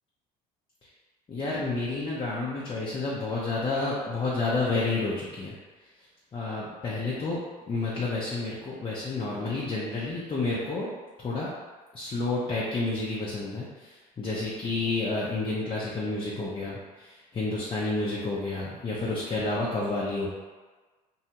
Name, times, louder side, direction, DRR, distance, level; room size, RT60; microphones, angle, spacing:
voice 1, 1.3-5.5 6.3-7.4 7.7-10.9 11.2-11.5 11.9-20.3, left 3 dB, 25° left, -6 dB, 0.6 m, -30 dB
2.7 x 2.1 x 2.8 m, 1.3 s
hypercardioid pair, 65°, 20 cm